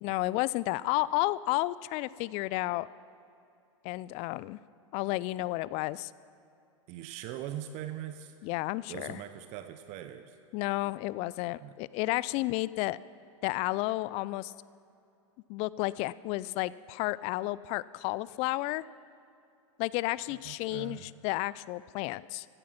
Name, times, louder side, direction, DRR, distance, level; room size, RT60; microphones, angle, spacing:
voice 1, 0.0-2.9 3.8-4.6 4.9-6.1 8.4-9.2 10.5-13.0 13.4-14.5 15.5-18.8 19.8-22.5, left 19 dB, 40° left, 20 dB, 0.4 m, -32 dB
voice 2, 6.9-8.3 8.9-10.4 11.6-11.8 20.3-21.1, right 11 dB, 45° right, 9 dB, 0.8 m, -41 dB
15.5 x 12.5 x 5.9 m, 2.6 s
hypercardioid pair, 100°, 16 cm